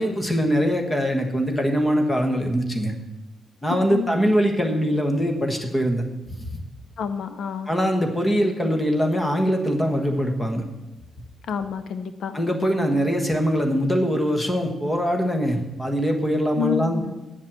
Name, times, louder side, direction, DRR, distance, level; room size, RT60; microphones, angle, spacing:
voice 1, 0.0-2.9 3.6-6.0 6.3-6.6 7.7-10.6 12.3-17.1, equal, 10° left, 3 dB, 1.3 m, -22 dB
voice 2, 3.7-4.1 7.0-7.7 11.5-12.4 16.6-17.1, left 7 dB, 65° left, 10 dB, 0.6 m, -29 dB
9.0 x 7.5 x 7.3 m, 1.0 s
wide cardioid pair, 170°, 0 cm